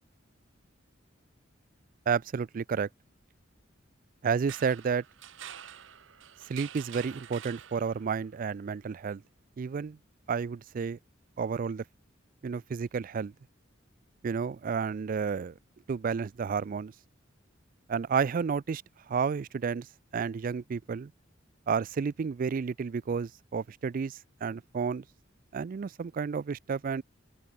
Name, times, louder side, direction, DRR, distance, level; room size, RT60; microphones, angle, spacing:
voice 1, 2.1-2.9 4.2-5.0 6.5-9.2 9.6-10.0 10.3-11.0 11.4-11.8 12.4-13.3 14.2-15.5 15.9-16.9 17.9-18.8 19.1-19.9 20.1-21.1 21.7-25.0 25.5-27.0, right 6 dB, 45° right, 0.3 m, -31 dB
sound 1, 4.5-8.2, right 10 dB, 70° right, 0.8 m, -47 dB
open air
head